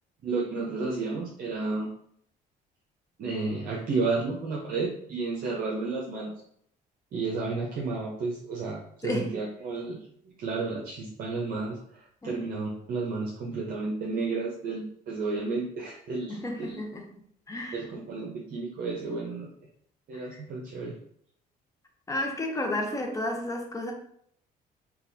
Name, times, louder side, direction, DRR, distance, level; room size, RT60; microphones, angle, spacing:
voice 1, 0.2-1.9 3.2-6.3 7.1-10.0 10.2-16.8 17.7-19.5 20.1-21.0, right 3 dB, 60° right, -4 dB, 0.7 m, -32 dB
voice 2, 9.0-9.3 12.2-12.3 16.3-17.1 17.5-17.8 22.1-23.9, left 1 dB, 20° left, 2 dB, 0.7 m, -32 dB
4.0 x 2.3 x 2.6 m, 0.67 s
cardioid pair, 110°, 17 cm